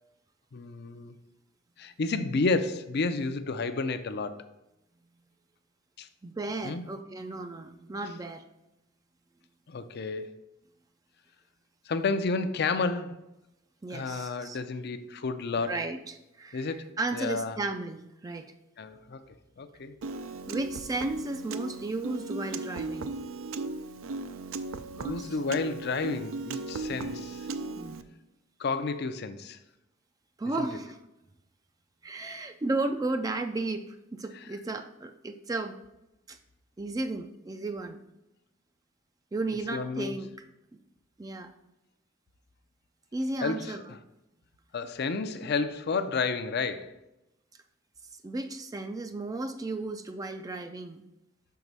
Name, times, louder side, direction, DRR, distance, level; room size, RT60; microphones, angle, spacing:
voice 1, 0.5-1.1 1.8-4.5 6.0-6.1 6.6-6.8 9.7-10.4 11.9-13.2 13.9-15.8 16.5-17.6 18.8-19.2 19.6-20.0 25.0-27.5 28.6-29.6 30.6-30.7 39.7-40.2 43.4-44.0 44.7-46.9, left 4 dB, 55° left, 0.5 m, -31 dB
voice 2, 6.2-8.4 13.8-14.6 15.6-18.5 20.5-23.1 25.0-25.4 26.9-27.0 27.8-28.0 30.4-31.0 32.0-35.8 36.3-36.4 36.8-38.0 39.3-40.3 41.2-41.5 43.1-43.8 48.2-51.0, right 2 dB, 20° right, 0.3 m, -34 dB
Piano, 20.0-28.0, right 3 dB, 80° right, 0.5 m, -37 dB
5.8 x 4.6 x 5.4 m
head